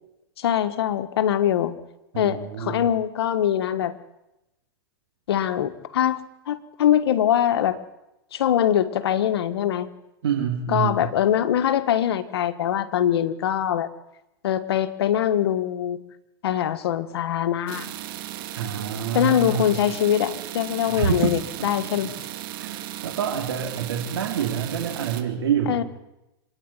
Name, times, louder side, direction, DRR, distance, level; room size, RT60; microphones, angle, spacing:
voice 1, 0.4-1.7 2.2-3.9 5.3-6.2 6.5-7.8 8.3-9.9 10.7-13.9 14.4-16.0 16.4-17.9 19.1-22.1 25.7-25.8, left 10 dB, 80° left, 11 dB, 1.6 m, -23 dB
voice 2, 2.1-2.8 10.2-11.0 18.5-19.8 20.9-21.4 22.6-25.8, right 8 dB, 80° right, 1 dB, 2.9 m, -27 dB
sound 1, 17.7-25.2, right 13 dB, 60° right, 2.1 m, -36 dB
26.0 x 10.5 x 9.8 m, 0.94 s
hypercardioid pair, 120°, 13 cm